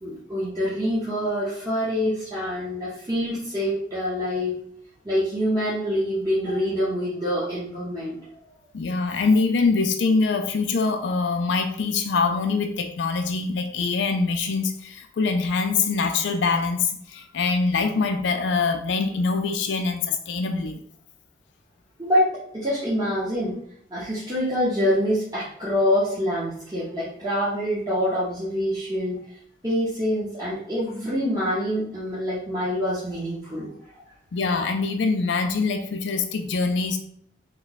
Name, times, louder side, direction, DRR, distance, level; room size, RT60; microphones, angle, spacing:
voice 1, 0.0-4.6 5.0-8.2 22.0-23.6 23.9-29.2 29.6-34.0, equal, 20° right, -10 dB, 0.9 m, -26 dB
voice 2, 8.7-20.8 34.3-37.0, left 4 dB, 70° left, 6 dB, 0.4 m, -24 dB
3.2 x 2.2 x 3.9 m, 0.67 s
head